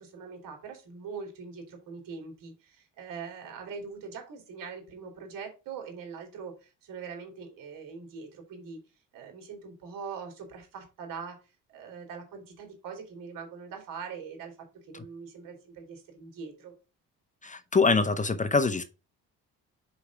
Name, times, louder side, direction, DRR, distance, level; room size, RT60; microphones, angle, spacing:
voice 1, 0.0-8.8 9.1-11.4 11.7-14.5 14.8-16.7, right 5 dB, 70° right, 3.0 m, -42 dB
voice 2, 17.4-18.8, left 4 dB, 20° left, 0.7 m, -24 dB
5.3 x 5.0 x 4.7 m
supercardioid pair, 80°, 34 cm